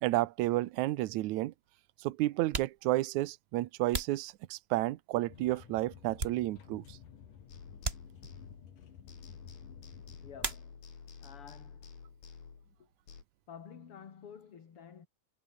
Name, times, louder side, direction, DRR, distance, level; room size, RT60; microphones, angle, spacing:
voice 1, 0.0-1.5 2.0-7.0, right 17 dB, 70° right, 2.0 m, -31 dB
sound 1, 1.6-1.8 2.3-5.0 5.5-6.9 7.2-7.3 7.8-8.6 10.4-11.2 11.4-12.1 12.4-14.5, right 3 dB, 20° right, 2.3 m, -42 dB
sound 2, 5.3-10.5, left 8 dB, 70° left, 3.9 m, -53 dB
sound 3, 7.5-8.8 9.1-13.2, left 6 dB, 85° left, 6.2 m, -51 dB
voice 2, 10.2-10.9 11.2-11.9 12.8-12.9 13.5-15.1, left 7 dB, 45° left, 3.0 m, -51 dB
omnidirectional pair, 3.9 m